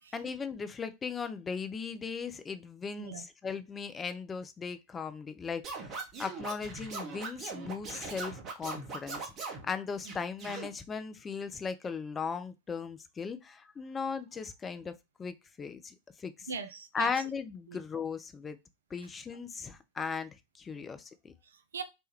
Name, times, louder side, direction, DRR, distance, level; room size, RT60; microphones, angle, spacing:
voice 1, 0.1-14.9 15.2-16.5 16.9-18.6 18.9-21.3, left 5 dB, 20° left, 0.3 m, -38 dB
Scratching (performance technique), 5.6-9.6 10.0-10.7, right 4 dB, 30° right, 0.8 m, -40 dB
voice 2, 16.5-17.1 17.7-17.8 19.0-19.1 20.7-20.9 21.4-21.8, right 4 dB, 65° right, 0.4 m, -41 dB
3.2 x 2.2 x 2.9 m
figure-of-eight pair, 90°, 0 cm